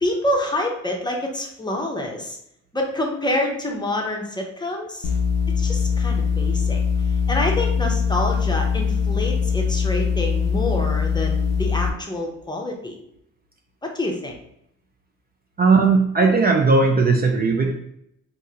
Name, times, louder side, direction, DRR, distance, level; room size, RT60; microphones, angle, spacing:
voice 1, 0.0-2.4 2.7-5.1 5.6-6.8 7.3-13.0 13.8-14.3, left 1 dB, 15° left, 1 dB, 0.7 m, -27 dB
sound 1, 5.0-11.9, left 6 dB, 55° left, 0.5 m, -22 dB
voice 2, 15.6-17.7, right 4 dB, 30° right, 2 dB, 0.5 m, -17 dB
3.6 x 2.6 x 2.8 m, 0.75 s
cardioid pair, 90°, 30 cm